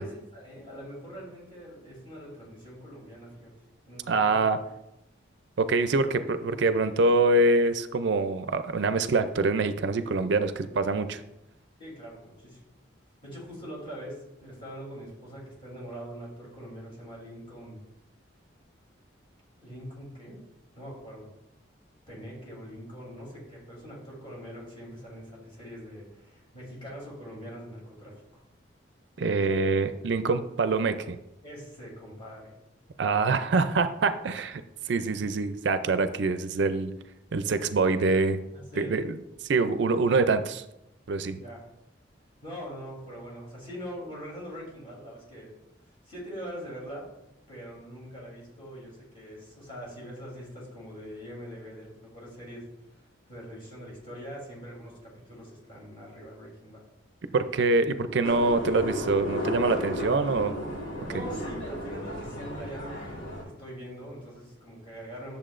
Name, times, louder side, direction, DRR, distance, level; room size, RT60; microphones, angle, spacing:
voice 1, 0.0-3.5 3.9-4.4 11.8-12.6 13.2-17.8 19.6-20.4 20.7-21.3 22.1-28.2 29.2-29.7 31.4-32.5 35.1-35.2 38.5-39.0 41.3-41.7 42.4-45.5 45.8-47.1 47.5-56.8 60.2-60.3 61.0-65.4, equal, 25° left, -4 dB, 3.1 m, -43 dB
voice 2, 4.1-4.6 5.6-11.2 29.2-31.2 33.0-34.6 34.9-36.9 37.3-38.4 38.8-39.1 39.4-40.6 41.1-41.4 57.3-60.5, right 3 dB, 60° right, 10 dB, 0.4 m, -25 dB
sound 1, 58.2-63.4, left 1 dB, 80° left, 2.2 m, -34 dB
10.0 x 7.0 x 2.5 m, 0.88 s
head